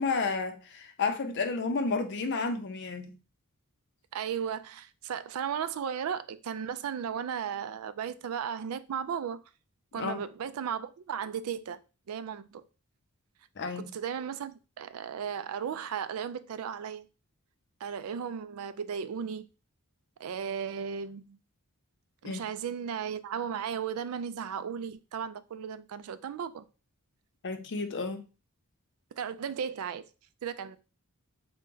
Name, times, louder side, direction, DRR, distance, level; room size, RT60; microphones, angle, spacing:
voice 1, 0.0-3.1 10.0-10.2 13.6-13.9 22.2-22.4 27.4-28.2, left 4 dB, 55° left, 0.6 m, -31 dB
voice 2, 4.1-9.4 9.9-11.8 12.1-12.6 13.8-17.1 17.8-19.5 20.2-21.4 22.2-26.6 29.2-30.0 30.4-30.8, right 7 dB, 75° right, 0.3 m, -35 dB
3.8 x 2.2 x 3.7 m
head